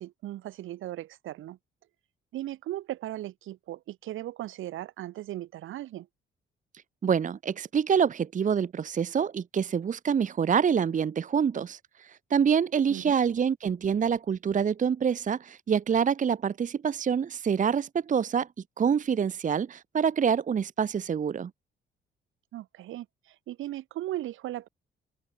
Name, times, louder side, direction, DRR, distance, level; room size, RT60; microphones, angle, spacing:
voice 1, 0.0-1.6 2.3-6.1 12.9-13.2 22.5-24.7, right 14 dB, 85° right, 6.6 m, -37 dB
voice 2, 7.0-18.5 18.8-21.5, right 7 dB, 40° right, 0.9 m, -26 dB
open air
cardioid pair, 90°, 20 cm